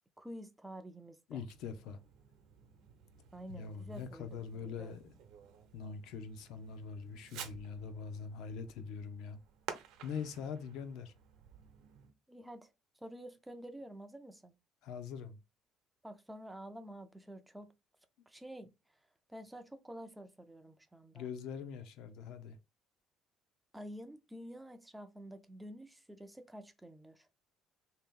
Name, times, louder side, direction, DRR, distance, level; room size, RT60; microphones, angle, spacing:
voice 1, 0.2-1.4 3.3-4.9 12.3-14.6 16.0-17.7 18.3-18.7 19.3-21.3 23.7-27.3, right 1 dB, 5° right, 0.3 m, -49 dB
voice 2, 1.3-2.0 3.5-5.1 5.7-9.4 10.0-11.1 14.8-15.4 21.1-22.6, left 6 dB, 65° left, 0.6 m, -43 dB
Fireworks, 1.4-12.1, right 8 dB, 70° right, 0.7 m, -53 dB
3.4 x 2.8 x 3.6 m
cardioid pair, 180°, 0 cm